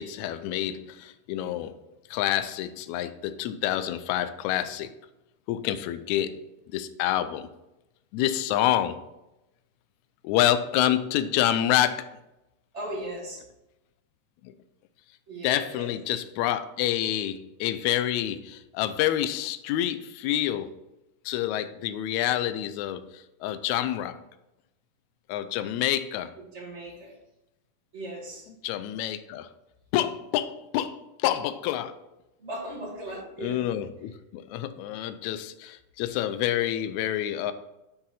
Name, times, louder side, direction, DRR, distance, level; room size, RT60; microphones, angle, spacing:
voice 1, 0.0-1.7 2.1-4.9 5.5-6.4 6.7-7.5 8.1-9.0 10.2-12.1 14.4-14.5 15.4-20.7 21.2-24.2 25.3-26.3 28.6-29.5 29.9-32.0 33.4-37.5, left 12 dB, 80° left, 11 dB, 1.7 m, -27 dB
voice 2, 12.7-13.4 15.3-15.9 26.4-27.1 27.9-28.5 32.4-33.6, right 1 dB, 25° right, -3 dB, 1.8 m, -37 dB
7.5 x 6.1 x 4.1 m, 0.94 s
omnidirectional pair, 3.7 m